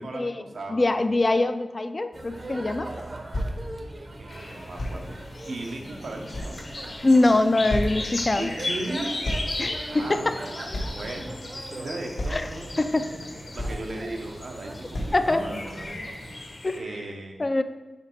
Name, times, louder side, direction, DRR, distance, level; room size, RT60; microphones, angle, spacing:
voice 1, 0.0-1.1 4.2-6.5 8.4-9.2 9.9-13.0 13.5-15.9 16.2-16.3 16.7-17.4, right 2 dB, 90° right, 2 dB, 0.9 m, -37 dB
voice 2, 0.7-3.1 7.0-8.5 9.6-10.4 12.3-12.5 12.8-13.1 15.1-15.4 16.6-16.8 17.4-17.6, left 2 dB, 35° left, 9 dB, 0.3 m, -23 dB
sound 1, 2.1-16.4, right 1 dB, 40° right, 0.7 m, -41 dB
sound 2, 3.3-3.6 4.8-5.0 5.8-5.9 6.3-7.0 7.3-7.4 7.7-8.0 9.2-9.5 9.8-9.9 10.7-11.0 11.6-11.7 12.2-12.5 13.2-13.3 13.6-13.9 14.3-14.4 14.9-15.2 15.8-15.9, left 1 dB, 75° left, 1.1 m, -30 dB
sound 3, 4.3-16.8, left 2 dB, 55° left, 1.0 m, -37 dB
5.8 x 4.1 x 4.4 m, 1.2 s
wide cardioid pair, 110°, 0 cm